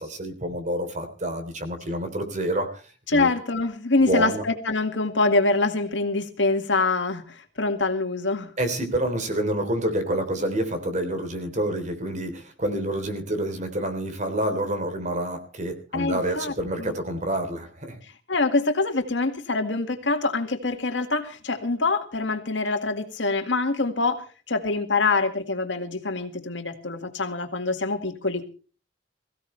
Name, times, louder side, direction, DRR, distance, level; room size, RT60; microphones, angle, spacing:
voice 1, 0.0-2.7 3.1-3.3 4.1-4.4 8.6-18.0, right 1 dB, 40° right, 7 dB, 3.5 m, -28 dB
voice 2, 3.1-8.5 15.9-16.9 18.3-28.5, left 3 dB, 75° left, 7 dB, 2.1 m, -25 dB
22.0 x 16.0 x 3.3 m, 0.37 s
head